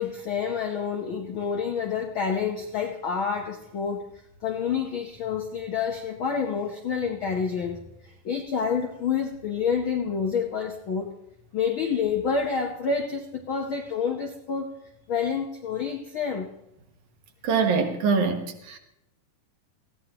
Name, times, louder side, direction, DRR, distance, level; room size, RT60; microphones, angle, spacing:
voice 1, 0.0-4.0 4.4-7.8 8.2-11.1 11.5-14.7 15.1-16.5, left 6 dB, 75° left, 2 dB, 1.1 m, -28 dB
voice 2, 17.4-18.8, right 5 dB, 70° right, 4 dB, 2.6 m, -24 dB
19.5 x 15.0 x 2.9 m, 0.86 s
omnidirectional pair, 3.8 m